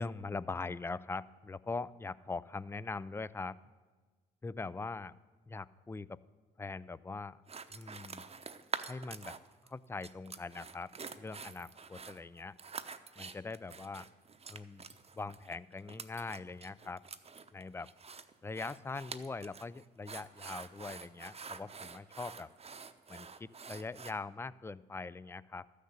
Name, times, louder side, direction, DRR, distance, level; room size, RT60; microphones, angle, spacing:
voice 1, 0.0-3.6 4.4-5.1 5.5-6.2 6.6-7.4 7.7-8.2 8.9-9.4 9.6-12.5 13.2-14.1 14.5-14.8 15.1-17.0 17.5-17.9 18.4-22.5 23.1-25.7, left 3 dB, 10° left, 19 dB, 0.4 m, -42 dB
sound 1, 7.5-9.7 10.0-24.1, right 5 dB, 30° right, 0.9 m, -47 dB
13.0 x 6.6 x 8.0 m, 1.4 s
hypercardioid pair, 55°, 21 cm